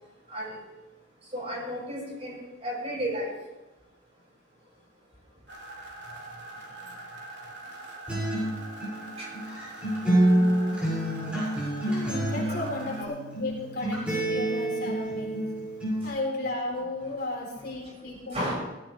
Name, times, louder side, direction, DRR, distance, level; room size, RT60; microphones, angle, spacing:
voice 1, 0.3-0.6 1.3-3.3 9.2-9.3 12.4-13.1 16.0-16.1 18.3-18.5, equal, 30° right, -4 dB, 6.7 m, -34 dB
sound 1, 5.5-13.0, right 2 dB, 60° right, 3.3 m, -43 dB
Acoustic guitar, 8.1-16.1, right 1 dB, 5° right, 6.5 m, -28 dB
voice 2, 11.9-12.9 13.4-15.4 16.0-18.5, left 2 dB, 50° left, -2 dB, 4.0 m, -34 dB
18.0 x 16.0 x 3.5 m, 1.0 s
head